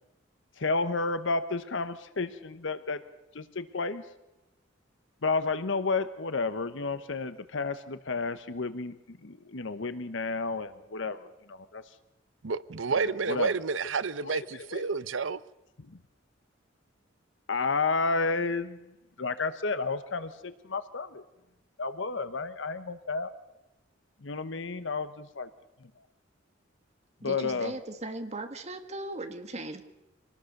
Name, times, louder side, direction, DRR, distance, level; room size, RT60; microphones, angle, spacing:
voice 1, 0.6-3.0 3.3-4.0 5.2-11.8 13.3-13.5 14.2-14.8 15.9-16.0 17.5-18.8 19.2-21.2 21.8-23.3 24.2-25.5 27.2-27.7, left 4 dB, 70° left, 1.0 m, -31 dB
voice 2, 12.4-15.4, right 4 dB, 75° right, 0.7 m, -30 dB
voice 3, 27.2-29.8, right 2 dB, 35° right, 1.8 m, -38 dB
25.0 x 19.0 x 6.6 m
head